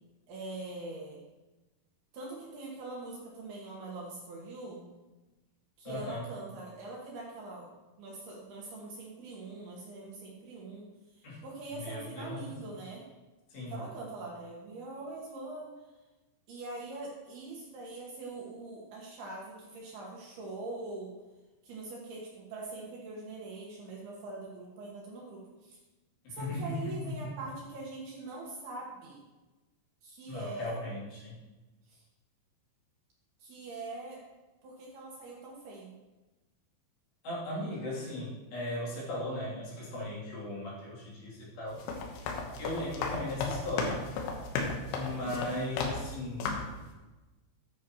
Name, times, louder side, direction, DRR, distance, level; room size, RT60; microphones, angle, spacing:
voice 1, 0.3-1.2 2.1-4.9 5.8-7.7 8.0-10.9 11.1-13.0 13.7-15.9 16.5-21.1 21.6-25.8 26.3-29.2 30.0-30.9 31.9-32.0 33.4-34.2 34.6-35.9 45.1-45.6, right 2 dB, 65° right, -3 dB, 3.1 m, -43 dB
voice 2, 5.8-6.2 11.2-11.4 11.8-12.5 13.5-13.8 26.2-27.3 30.3-31.4 37.2-41.8 42.6-44.0 44.9-46.6, left 1 dB, 65° left, -7 dB, 5.1 m, -37 dB
sound 1, 41.7-46.1 46.4-46.8, left 4 dB, 80° left, 3.6 m, -35 dB
14.0 x 9.8 x 3.1 m, 1.1 s
omnidirectional pair, 5.4 m